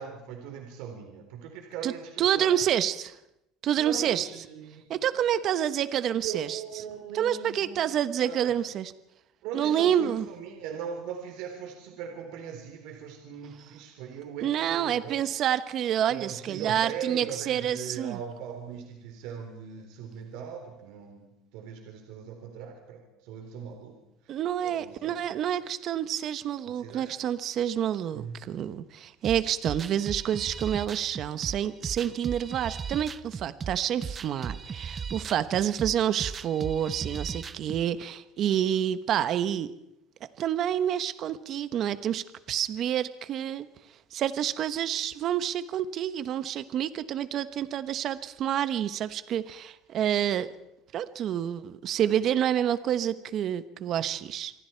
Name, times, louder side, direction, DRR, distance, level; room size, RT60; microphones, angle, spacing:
voice 1, 0.0-2.6 3.7-4.8 5.1-7.8 8.1-8.5 9.4-15.2 16.1-24.0 24.2-25.3 26.7-27.1 28.1-28.4, right 7 dB, 70° right, 3 dB, 3.9 m, -40 dB
voice 2, 2.2-3.1 3.6-4.3 4.9-6.6 7.1-8.9 9.5-10.2 14.4-18.2 24.3-39.7 40.4-43.7 44.1-50.5 50.9-54.5, right 10 dB, 45° right, 13 dB, 1.1 m, -28 dB
sound 1, 29.2-37.8, right 6 dB, 25° right, 0.7 m, -37 dB
27.0 x 23.5 x 4.6 m, 0.84 s
cardioid pair, 145°, 0 cm